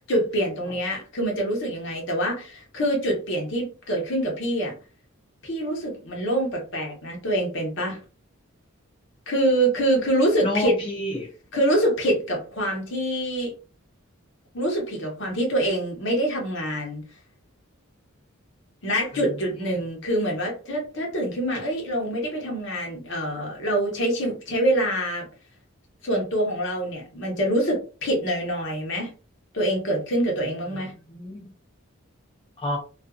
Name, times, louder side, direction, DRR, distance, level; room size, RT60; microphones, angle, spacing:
voice 1, 0.1-4.7 5.4-8.0 9.3-10.7 11.5-13.5 14.5-17.0 18.8-25.3 26.0-29.1 29.5-30.9, right 1 dB, 60° left, -1 dB, 1.0 m, -25 dB
voice 2, 10.4-11.3 19.1-19.8 30.7-30.8 31.1-31.5 32.6-32.8, left 1 dB, 25° left, -3 dB, 0.6 m, -30 dB
2.5 x 2.5 x 2.3 m, 0.35 s
head